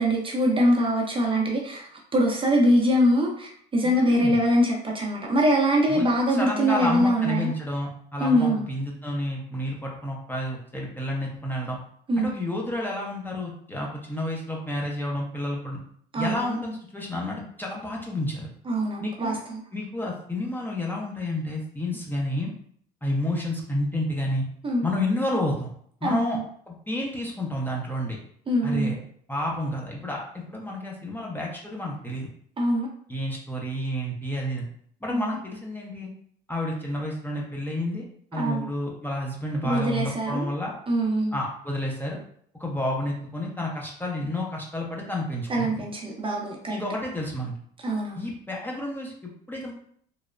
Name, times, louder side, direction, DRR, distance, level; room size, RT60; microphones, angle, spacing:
voice 1, 0.0-7.5 8.2-8.6 12.1-12.3 16.1-16.6 18.7-19.6 24.6-24.9 26.0-26.4 28.5-29.0 32.6-32.9 35.1-35.3 38.4-38.7 39.6-40.5 40.9-41.4 45.5-46.8 47.8-48.3, equal, 25° right, -1 dB, 0.7 m, -23 dB
voice 2, 3.8-4.4 5.9-11.8 12.2-15.8 16.2-18.5 19.0-19.4 19.7-22.5 23.0-24.4 24.8-25.7 26.0-26.4 26.7-28.2 28.6-29.0 29.3-32.3 33.1-34.6 35.0-36.1 36.5-38.0 38.3-40.7 41.3-42.2 42.6-45.8 46.7-47.5 48.2-49.7, left 1 dB, 10° left, -2 dB, 0.7 m, -30 dB
3.0 x 2.0 x 2.5 m, 0.62 s
hypercardioid pair, 75°, 21 cm